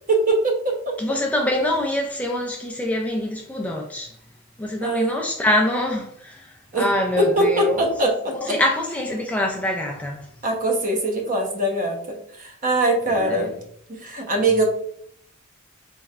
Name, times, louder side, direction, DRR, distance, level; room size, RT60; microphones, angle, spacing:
voice 1, 0.1-0.9 4.8-5.2 6.7-6.9 7.2-8.6 10.4-13.5 13.9-14.6, right 2 dB, 40° right, 0.9 m, -22 dB
voice 2, 1.0-4.1 4.6-6.5 6.7-7.8 8.4-10.3 13.2-13.5, left 1 dB, 5° left, 0.3 m, -24 dB
4.2 x 3.1 x 2.4 m
head